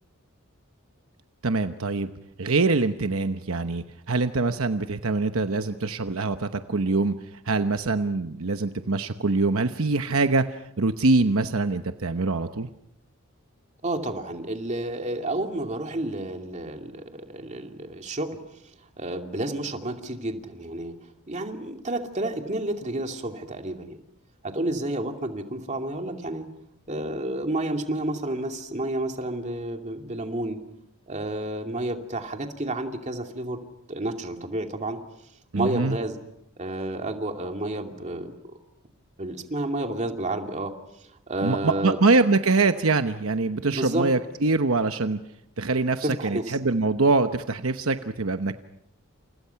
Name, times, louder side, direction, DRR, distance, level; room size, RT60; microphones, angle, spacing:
voice 1, 1.4-2.1 2.4-7.1 7.4-12.7 35.5-36.0 41.4-45.2 45.6-48.6, right 3 dB, 70° right, 8 dB, 1.0 m, -24 dB
voice 2, 13.8-18.3 19.0-20.9 21.3-24.0 24.4-26.5 26.9-30.6 31.1-33.6 33.9-35.0 35.5-36.2 36.6-38.3 39.2-40.7 41.3-42.0 43.7-44.1 46.0-46.6, right 1 dB, 35° right, 4 dB, 2.6 m, -30 dB
29.5 x 28.5 x 5.8 m, 0.78 s
head